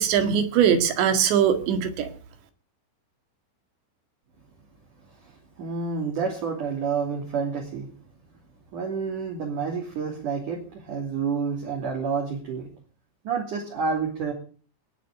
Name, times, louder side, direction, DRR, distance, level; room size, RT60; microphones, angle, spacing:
voice 1, 0.0-2.1, right 8 dB, 65° right, 8 dB, 3.9 m, -21 dB
voice 2, 5.2-7.9 8.7-12.7 13.2-14.3, right 5 dB, 45° right, 0 dB, 4.0 m, -29 dB
19.5 x 6.7 x 9.8 m, 0.42 s
omnidirectional pair, 5.8 m